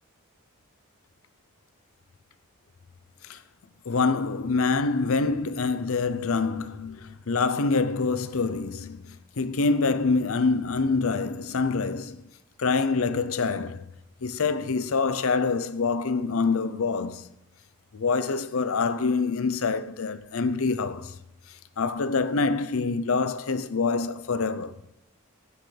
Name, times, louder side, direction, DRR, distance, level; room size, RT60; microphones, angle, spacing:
voice 1, 3.9-12.3 12.6-13.8 14.2-17.2 17.9-21.1 21.8-24.7, left 4 dB, 75° left, 0.6 m, -26 dB
9.6 x 9.1 x 3.3 m
head